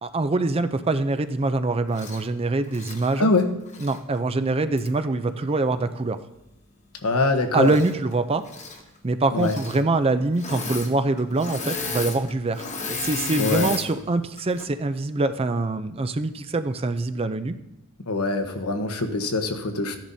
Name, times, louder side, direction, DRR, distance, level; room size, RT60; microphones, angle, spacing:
voice 1, 0.0-3.3 3.8-6.2 7.5-8.5 9.0-17.6, right 2 dB, 25° right, 10 dB, 0.4 m, -24 dB
Engine / Mechanisms, 1.9-2.2 2.7-4.0 4.8-4.9 7.6-8.1 8.4-8.8 9.4-9.8 10.3-10.9 11.2-13.9 14.4-14.7, left 3 dB, 30° left, 1.1 m, -33 dB
voice 2, 7.0-7.7 9.3-9.6 13.4-13.7 18.1-20.0, left 3 dB, 80° left, 6 dB, 1.1 m, -23 dB
14.5 x 10.5 x 2.7 m, 0.90 s
head